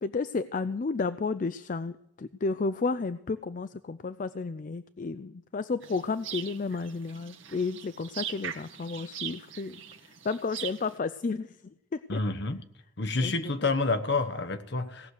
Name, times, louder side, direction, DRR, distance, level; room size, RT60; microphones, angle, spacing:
voice 1, 0.0-12.2 13.2-13.5, left 4 dB, 40° left, 13 dB, 0.4 m, -32 dB
sound 1, 5.8-10.9, right 9 dB, 70° right, 1.5 m, -41 dB
voice 2, 12.1-12.6 13.0-15.1, left 3 dB, 55° left, 9 dB, 1.2 m, -28 dB
17.5 x 6.4 x 8.2 m, 0.81 s
head